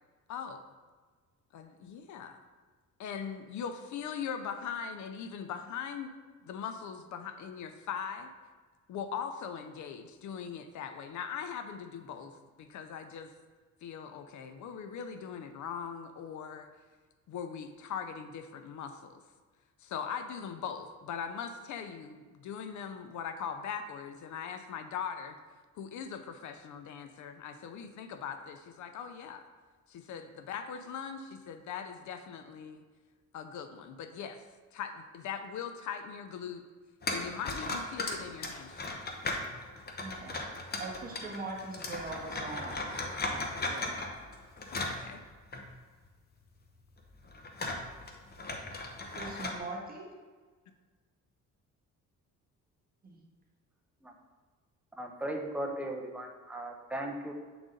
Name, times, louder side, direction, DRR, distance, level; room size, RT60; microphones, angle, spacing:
voice 1, 0.3-0.6 1.5-2.4 3.0-6.2 6.4-8.3 8.9-12.3 12.6-13.3 13.8-16.7 17.3-19.2 19.8-25.3 25.8-29.4 29.9-32.8 33.3-34.4 34.7-36.6 37.1-38.9 44.7-45.2, left 7 dB, 65° left, 8 dB, 0.6 m, -40 dB
sound 1, 37.0-45.7 46.0-46.1 46.8-49.6, left 2 dB, 30° left, 0.8 m, -37 dB
voice 2, 40.0-43.0 43.2-43.9 49.1-50.1 53.0-53.2, right 3 dB, 30° right, -2 dB, 1.4 m, -42 dB
voice 3, 55.0-57.3, right 1 dB, 5° right, 1 dB, 0.8 m, -37 dB
7.8 x 3.9 x 3.8 m, 1.4 s
cardioid pair, 110°, 31 cm